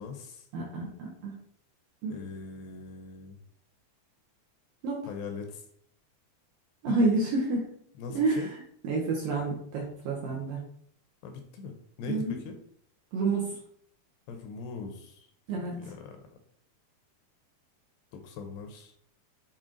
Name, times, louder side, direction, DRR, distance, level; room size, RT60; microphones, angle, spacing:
voice 1, 0.0-0.5 2.1-3.4 5.1-5.6 6.9-7.0 8.0-8.5 11.2-12.6 14.3-16.3 18.1-18.9, left 5 dB, 80° left, 5 dB, 2.6 m, -41 dB
voice 2, 0.5-1.3 2.0-2.1 4.8-5.0 6.8-7.7 8.1-10.6 12.1-12.4 13.1-13.6 15.5-15.9, right 3 dB, 75° right, -3 dB, 2.2 m, -29 dB
7.6 x 4.1 x 3.8 m, 0.67 s
omnidirectional pair, 5.2 m